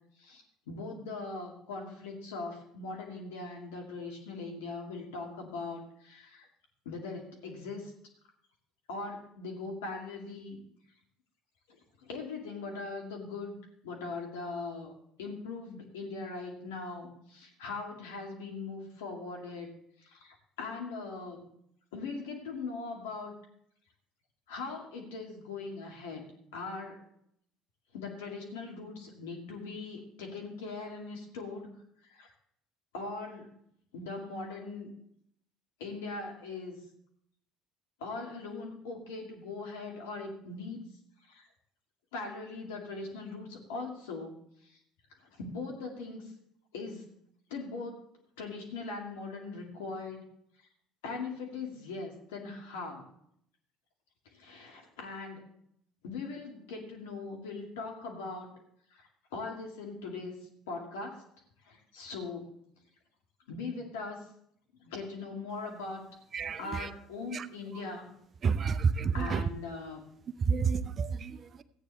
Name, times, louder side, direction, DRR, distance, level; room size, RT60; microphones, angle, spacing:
voice 1, 0.2-6.5 6.9-7.9 8.9-10.6 11.7-13.6 13.8-14.9 15.2-21.5 21.9-23.3 24.5-27.1 27.9-31.7 32.0-32.3 32.9-33.6 33.9-34.9 35.8-36.8 38.0-40.8 41.2-41.5 42.1-44.4 44.7-44.8 45.2-46.3 46.7-47.2 47.5-48.0 48.4-50.3 51.0-53.1 54.3-55.5 56.0-58.6 58.9-61.2 61.6-62.5 63.5-64.3 64.8-66.1 66.6-68.1 69.1-70.0, left 3 dB, 80° left, 2.3 m, -40 dB
voice 2, 66.3-66.9 67.3-67.5 68.4-69.4 70.5-71.6, right 5 dB, 45° right, 0.7 m, -29 dB
14.5 x 9.0 x 3.3 m
hypercardioid pair, 65°, 0 cm